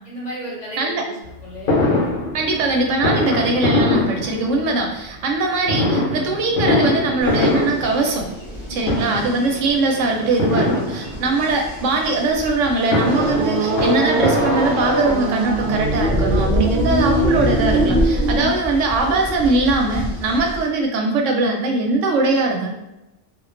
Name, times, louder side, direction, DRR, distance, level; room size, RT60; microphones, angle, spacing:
voice 1, 0.1-1.9, right 1 dB, 40° left, -7 dB, 0.8 m, -35 dB
Fireworks, 1.7-4.9 5.7-8.6 8.8-9.5 10.4-11.5 12.6-15.3 16.1-16.2 16.5-16.6 16.9-18.1 18.4-18.5 18.7-18.8, left 2 dB, 80° left, 1.0 m, -22 dB
voice 2, 2.3-8.3 8.7-22.7, right 3 dB, 90° right, 2 dB, 0.9 m, -21 dB
sound 1, 7.2-20.7, equal, 5° right, 0.4 m, -35 dB
sound 2, 13.1-18.5, right 1 dB, 60° right, 0.5 m, -20 dB
2.3 x 2.2 x 2.4 m, 0.95 s
omnidirectional pair, 1.2 m